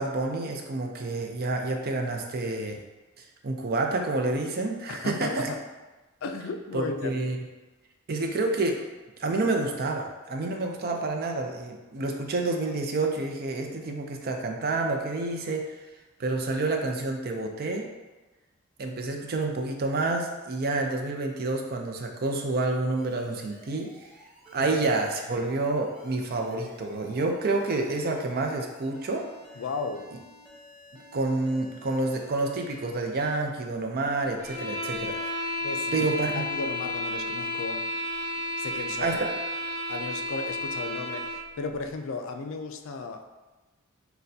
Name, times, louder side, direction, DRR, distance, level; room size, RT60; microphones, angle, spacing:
voice 1, 0.0-2.8 3.4-5.5 6.7-7.4 8.1-8.8 9.2-15.8 16.2-17.9 18.8-23.9 24.5-29.3 31.1-35.5 35.9-36.4 39.0-39.3, right 2 dB, 50° right, 2 dB, 0.5 m, -28 dB
voice 2, 4.9-5.6 6.2-7.2 24.6-24.7 29.6-30.1 35.6-36.1 36.3-37.9 38.6-39.2 39.9-43.3, left 3 dB, 65° left, 6 dB, 0.4 m, -35 dB
Alarm, 23.0-32.9, left 1 dB, 5° right, 0.7 m, -52 dB
sound 1, 34.4-41.5, left 1 dB, 20° right, 1.1 m, -32 dB
6.5 x 2.2 x 2.6 m, 1.2 s
head